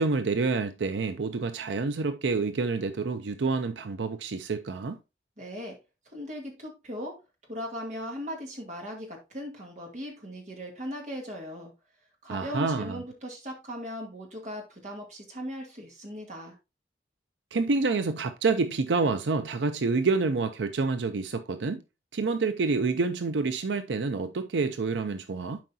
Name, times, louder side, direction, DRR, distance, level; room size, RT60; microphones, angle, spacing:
voice 1, 0.0-5.0 12.3-13.0 17.5-21.8 22.1-25.6, right 4 dB, 90° right, 0.5 m, -28 dB
voice 2, 5.4-5.8 6.1-7.2 7.5-11.7 12.2-16.5, equal, 40° right, 2.3 m, -38 dB
11.5 x 4.7 x 2.7 m
head